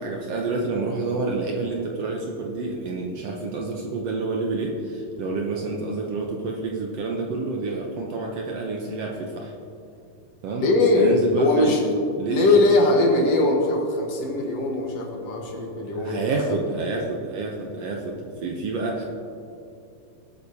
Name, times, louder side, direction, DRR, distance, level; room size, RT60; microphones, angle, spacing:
voice 1, 0.0-9.5 10.4-10.7 11.0-11.8 12.2-12.6 15.9-19.0, right 3 dB, 80° right, 0 dB, 1.4 m, -28 dB
voice 2, 10.6-11.8 12.3-16.2, left 2 dB, 60° left, 0 dB, 2.1 m, -20 dB
20.5 x 8.4 x 2.8 m, 2.6 s
omnidirectional pair, 4.0 m